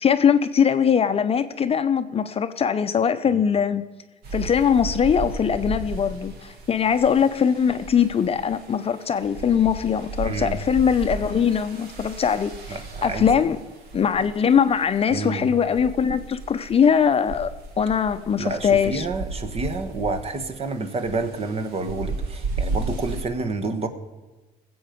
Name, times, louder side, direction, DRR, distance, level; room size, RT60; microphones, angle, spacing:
voice 1, 0.0-3.8 4.3-13.6 13.9-17.5 17.8-19.1, left 7 dB, 35° left, 0.7 m, -21 dB
sound 1, 4.2-23.2, right 3 dB, 70° right, 2.1 m, -35 dB
voice 2, 10.2-10.6 12.7-13.3 15.1-15.5 18.4-23.9, right 3 dB, 35° right, 1.3 m, -29 dB
19.0 x 7.9 x 5.2 m
cardioid pair, 110°, 17 cm